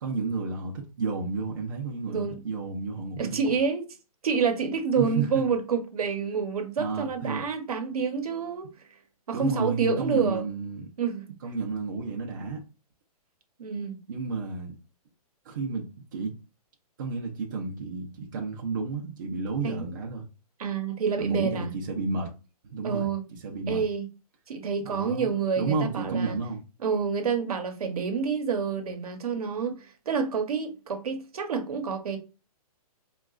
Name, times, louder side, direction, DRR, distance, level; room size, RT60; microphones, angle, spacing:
voice 1, 0.0-3.4 5.0-5.4 6.8-7.4 9.3-10.9 11.4-12.6 14.1-14.8 15.4-16.4 17.0-20.2 21.2-22.3 22.7-23.1 23.4-23.8 24.8-25.3 25.6-26.6, right 4 dB, 30° right, 0.5 m, -31 dB
voice 2, 2.1-2.4 3.2-3.8 4.2-8.7 9.3-10.5 11.0-11.2 13.6-14.0 19.6-19.9 20.6-21.7 22.8-23.2 23.7-24.1 24.5-26.4 26.8-32.2, right 6 dB, 70° right, 0.8 m, -28 dB
4.7 x 2.3 x 2.3 m
hypercardioid pair, 175°, 20 cm